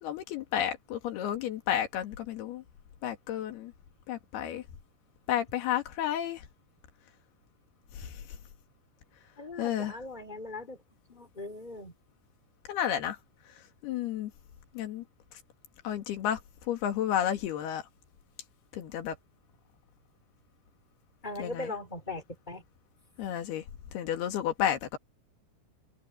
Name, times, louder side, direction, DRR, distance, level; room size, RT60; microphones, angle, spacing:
voice 1, 0.0-2.6 3.0-3.7 4.1-4.6 5.3-6.4 7.9-8.1 9.6-9.9 12.7-13.2 13.8-14.3 14.8-15.0 15.8-16.4 16.7-17.8 18.7-19.1 21.4-21.7 23.2-23.6 23.9-25.0, left 10 dB, 85° left, 4.1 m, -31 dB
voice 2, 9.4-10.8 11.1-11.9 21.2-22.6, left 2 dB, 15° left, 2.6 m, -39 dB
open air
omnidirectional pair, 4.4 m